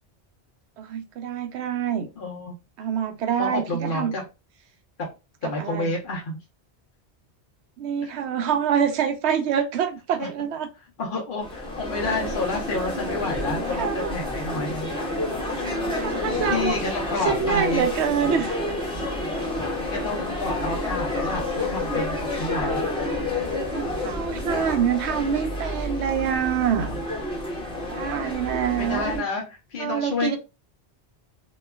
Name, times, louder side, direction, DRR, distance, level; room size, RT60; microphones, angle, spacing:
voice 1, 0.8-2.1 2.8-4.1 5.6-5.9 7.8-10.7 13.7-14.1 16.0-16.8 17.3-18.6 19.4-19.5 24.0-26.9 27.9-29.2 29.8-30.4, right 8 dB, 75° right, 8 dB, 0.9 m, -25 dB
voice 2, 2.2-2.5 3.4-4.2 5.0-5.1 5.4-6.4 8.0-8.2 10.2-10.3 11.0-14.9 15.9-16.1 16.4-17.8 19.9-22.9 26.9-27.0 28.2-30.4, left 3 dB, 55° left, -2 dB, 0.9 m, -30 dB
sound 1, 11.4-29.2, left 1 dB, 5° left, 0.7 m, -29 dB
3.0 x 2.2 x 2.2 m, 0.27 s
omnidirectional pair, 1.1 m